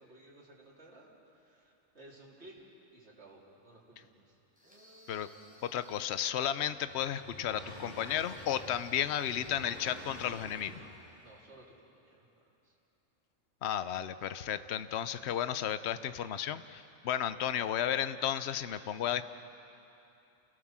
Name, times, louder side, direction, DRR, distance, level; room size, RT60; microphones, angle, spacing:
voice 1, 0.0-2.6 2.9-4.4 11.2-11.7 11.9-12.3 12.6-12.7, right 2 dB, 55° right, -4 dB, 3.6 m, -56 dB
sound 1, 4.6-6.3 8.0-9.8, equal, 5° right, 5.1 m, -58 dB
voice 2, 5.6-10.9 13.6-19.2, left 10 dB, 60° left, 12 dB, 0.9 m, -33 dB
sound 2, 6.5-11.2, left 1 dB, 35° left, 5.1 m, -49 dB
29.0 x 17.5 x 7.4 m, 2.8 s
omnidirectional pair, 1.4 m